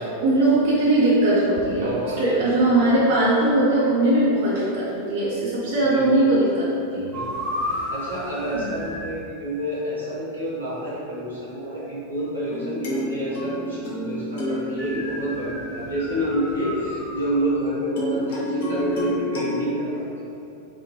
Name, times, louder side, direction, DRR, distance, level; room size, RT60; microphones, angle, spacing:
voice 1, 0.2-1.9 2.2-7.1 8.5-8.7, right 1 dB, 50° right, -7 dB, 0.4 m, -20 dB
voice 2, 1.7-2.6 5.8-6.3 7.1-20.1, right 1 dB, 85° right, -12 dB, 1.0 m, -28 dB
sound 1, 7.1-9.1 14.8-17.5, left 1 dB, 5° right, 0.6 m, -33 dB
sound 2, 12.5-16.8 18.0-19.7, left 1 dB, 55° left, 0.5 m, -30 dB
2.5 x 2.5 x 2.3 m, 2.6 s
figure-of-eight pair, 90°, 0 cm